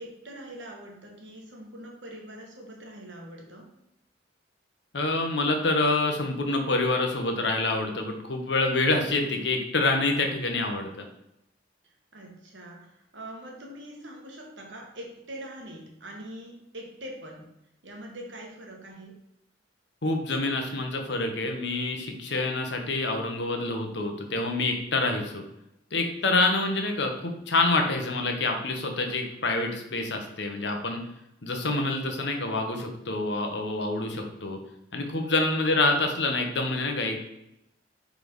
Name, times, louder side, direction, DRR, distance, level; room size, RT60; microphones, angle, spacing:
voice 1, 0.0-3.7 11.8-17.5 17.8-19.2 26.0-26.1 35.2-35.4, right 1 dB, 75° right, 0 dB, 1.5 m, -43 dB
voice 2, 4.9-11.1 20.0-25.4 25.9-31.0 31.4-34.6 34.9-37.2, left 2 dB, 65° left, 4 dB, 1.0 m, -27 dB
4.7 x 4.3 x 5.3 m, 0.84 s
head